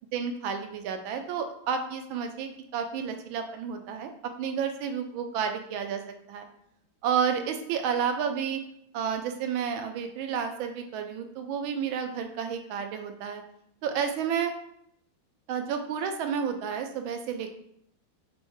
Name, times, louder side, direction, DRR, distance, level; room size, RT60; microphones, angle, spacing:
voice 1, 0.1-4.1 4.4-6.0 6.3-6.5 7.0-8.6 8.9-13.4 13.8-14.5 15.5-17.5, right 7 dB, 90° right, 6 dB, 1.4 m, -31 dB
5.2 x 2.1 x 4.6 m, 0.72 s
omnidirectional pair, 2.1 m